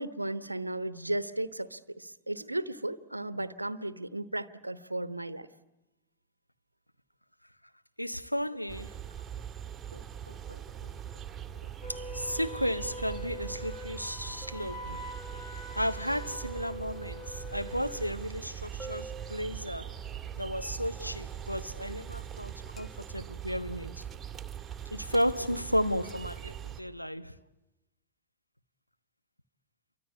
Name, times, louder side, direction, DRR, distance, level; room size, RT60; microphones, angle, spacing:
voice 1, 0.0-5.5 9.9-10.9 11.6-11.7, right 1 dB, 85° right, 1.0 m, -36 dB
voice 2, 8.0-9.0 11.9-15.0 15.8-19.9 20.4-24.0 24.9-27.4, equal, 90° left, 1.2 m, -33 dB
sound 1, 8.7-26.8, right 9 dB, 20° right, 2.1 m, -42 dB
Wind instrument woodwind instrument, 11.8-18.1, left 1 dB, 40° left, 5.3 m, -44 dB
sound 2, 14.4-15.5 18.8-20.2 22.8-23.5 26.1-26.4, right 3 dB, 15° left, 1.4 m, -50 dB
28.5 x 24.5 x 8.4 m
figure-of-eight pair, 90°, 0 cm